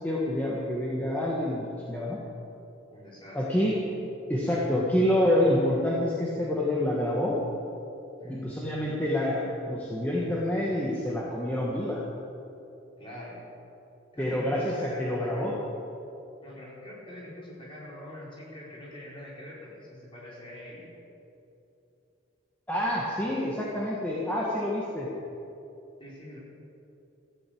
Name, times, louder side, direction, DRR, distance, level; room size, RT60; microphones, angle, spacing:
voice 1, 0.0-2.2 3.3-3.8 4.3-7.4 8.3-12.0 14.2-15.5 22.7-25.1, left 1 dB, 10° left, -5 dB, 1.6 m, -27 dB
voice 2, 2.9-3.4 8.2-8.6 13.0-13.4 14.1-15.5 16.4-20.9 26.0-26.4, left 1 dB, 25° left, -6 dB, 4.4 m, -44 dB
14.5 x 9.1 x 8.8 m, 2.8 s
head